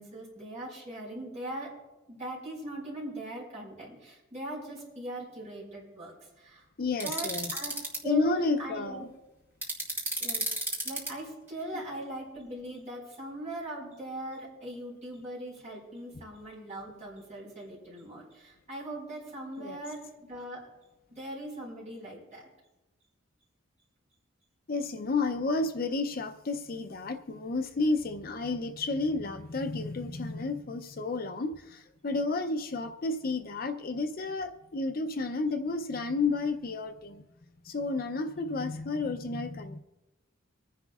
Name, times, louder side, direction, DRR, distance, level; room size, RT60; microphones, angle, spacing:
voice 1, 0.0-1.7 2.1-6.6 6.9-7.8 8.0-9.1 10.2-10.5 10.8-20.7 21.1-22.5, right 1 dB, 35° right, -4 dB, 4.6 m, -40 dB
voice 2, 6.8-7.5 8.0-9.1 19.6-19.8 24.7-37.2 37.6-39.8, left 3 dB, 45° left, 7 dB, 0.5 m, -31 dB
sound 1, 7.0-8.0 9.6-11.1, right 1 dB, 10° right, 1.7 m, -32 dB
24.5 x 10.0 x 2.4 m, 1.0 s
head